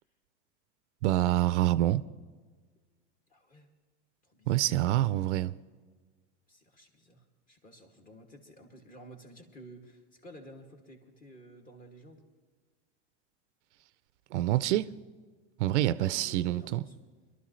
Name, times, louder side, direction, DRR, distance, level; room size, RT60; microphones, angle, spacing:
voice 1, 1.0-2.0 4.5-5.5 14.3-14.9 15.6-16.8, right 15 dB, 80° right, 0.6 m, -26 dB
voice 2, 3.3-3.7 4.2-4.7 6.5-12.3 15.9-17.0, right 1 dB, 25° left, 2.2 m, -52 dB
22.0 x 12.5 x 3.2 m
supercardioid pair, 130°, 35 cm